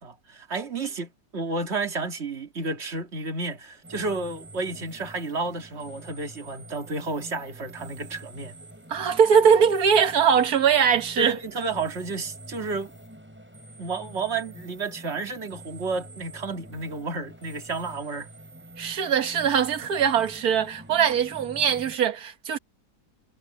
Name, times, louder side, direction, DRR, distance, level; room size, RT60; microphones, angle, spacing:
voice 1, 0.0-8.5 11.2-12.9 13.8-18.3, right 3 dB, 40° right, 2.7 m, -31 dB
sound 1, 3.8-22.0, right 1 dB, 5° right, 5.8 m, -46 dB
voice 2, 8.9-11.4 18.8-22.6, right 7 dB, 60° right, 1.8 m, -21 dB
omnidirectional pair, 1.8 m